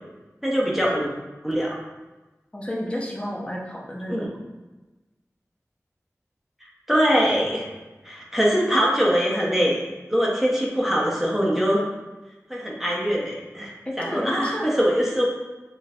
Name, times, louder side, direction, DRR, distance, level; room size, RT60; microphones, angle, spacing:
voice 1, 0.4-1.1 1.4-1.8 4.1-4.3 6.9-7.7 8.0-11.9 12.5-15.2, equal, 5° right, -4 dB, 1.1 m, -23 dB
voice 2, 2.5-4.3 13.8-14.7, equal, 20° left, -2 dB, 0.9 m, -31 dB
6.2 x 3.2 x 2.6 m, 1.1 s
wide cardioid pair, 40°, 6 cm